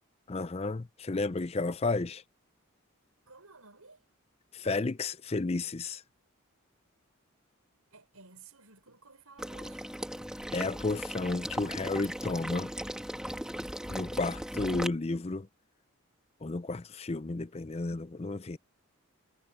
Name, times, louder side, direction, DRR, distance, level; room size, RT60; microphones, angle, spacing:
voice 1, 0.3-2.2 4.5-6.0 10.5-12.7 13.9-15.5 16.4-18.6, left 3 dB, 30° left, 0.5 m, -32 dB
voice 2, 3.3-4.1 7.9-10.3, right 4 dB, 85° right, 6.0 m, -55 dB
Water / Liquid, 9.4-14.9, equal, 5° right, 1.7 m, -38 dB
head